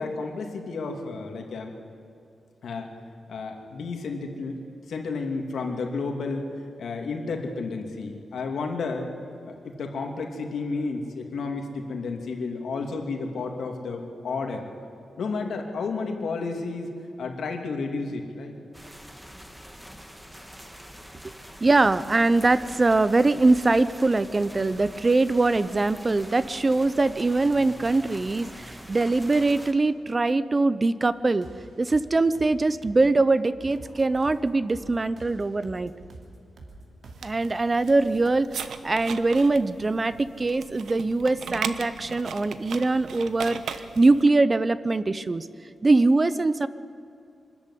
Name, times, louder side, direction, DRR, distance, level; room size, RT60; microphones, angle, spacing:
voice 1, 0.0-1.7 2.6-2.9 3.3-4.6 4.9-6.5 6.8-9.1 9.4-14.7 15.2-16.9 17.2-18.5, left 4 dB, 75° left, 3 dB, 2.8 m, -31 dB
sound 1, 18.7-29.7, equal, 5° right, 1.4 m, -44 dB
voice 2, 21.6-31.5 31.8-35.9 37.2-45.5 45.8-46.7, right 3 dB, 25° right, 15 dB, 0.5 m, -22 dB
sound 2, 31.0-37.3, right 2 dB, 50° right, 2.8 m, -47 dB
sound 3, 37.0-44.2, right 7 dB, 90° right, 1.0 m, -38 dB
25.0 x 13.5 x 10.0 m, 2.6 s
wide cardioid pair, 170°, 0 cm